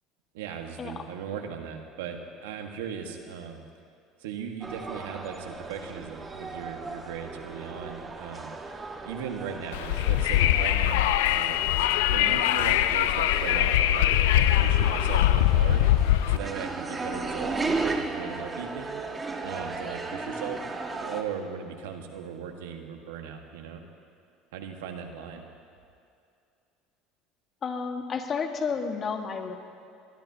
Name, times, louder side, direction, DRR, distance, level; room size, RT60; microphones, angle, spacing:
voice 1, 0.3-3.6 4.2-8.7 9.0-11.7 12.1-15.9 16.3-19.0 19.4-20.6 21.0-23.8 24.5-25.4, right 7 dB, 90° right, 4 dB, 1.5 m, -38 dB
sound 1, 4.6-21.2, right 3 dB, 25° right, 1.6 m, -36 dB
Wind, 9.7-16.4, left 13 dB, 85° left, 0.5 m, -22 dB
voice 2, 27.6-29.5, left 5 dB, 40° left, 4 dB, 1.7 m, -31 dB
21.5 x 21.0 x 2.9 m, 2.4 s
supercardioid pair, 90°, 0 cm